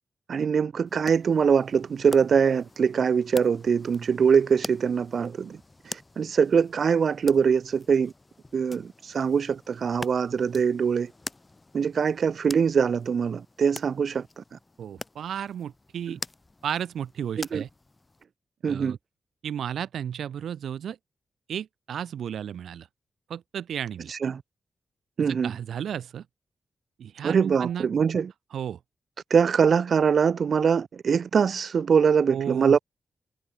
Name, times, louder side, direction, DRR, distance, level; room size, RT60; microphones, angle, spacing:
voice 1, 0.3-5.6 5.9-8.1 8.5-11.1 11.7-14.4 17.4-17.6 18.6-19.0 24.1-24.4 25.2-25.5 27.2-28.3 29.3-32.8, right 6 dB, 65° right, 1.1 m, -23 dB
sound 1, 0.9-18.2, left 2 dB, 25° left, 5.0 m, -45 dB
voice 2, 14.8-16.2 16.6-17.7 18.6-19.0 19.4-21.0 21.5-22.9 23.3-24.1 25.3-26.2 27.0-27.9 28.5-28.8 32.3-32.8, right 9 dB, 85° right, 6.2 m, -33 dB
cardioid pair, 70°, 0 cm